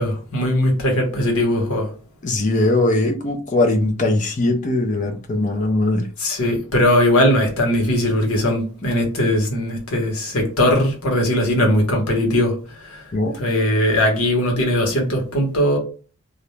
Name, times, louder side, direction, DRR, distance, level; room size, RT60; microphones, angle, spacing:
voice 1, 0.0-1.9 6.2-15.8, left 1 dB, 80° left, 1.0 m, -19 dB
voice 2, 2.2-6.0 13.1-13.3, left 2 dB, 35° left, 0.5 m, -20 dB
2.5 x 2.1 x 2.9 m
head